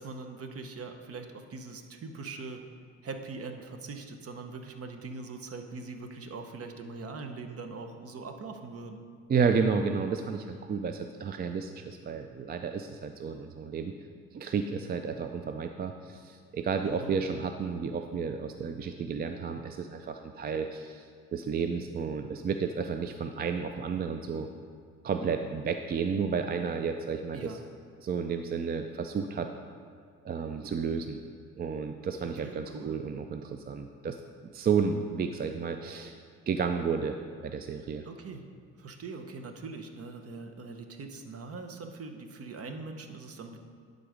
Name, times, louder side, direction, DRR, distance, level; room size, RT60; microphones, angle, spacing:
voice 1, 0.0-2.6 3.0-9.0 16.8-17.2 27.3-27.6 32.4-33.0 38.0-38.4 38.8-43.6, right 3 dB, 50° right, 6 dB, 0.8 m, -42 dB
voice 2, 9.3-13.9 14.3-21.1 21.3-24.5 25.0-27.6 28.0-29.5 30.2-31.2 31.6-34.2 34.5-36.2 36.5-37.2 37.4-38.0, right 6 dB, 35° right, 6 dB, 0.4 m, -31 dB
11.0 x 4.0 x 5.0 m, 2.2 s
cardioid pair, 90°, 30 cm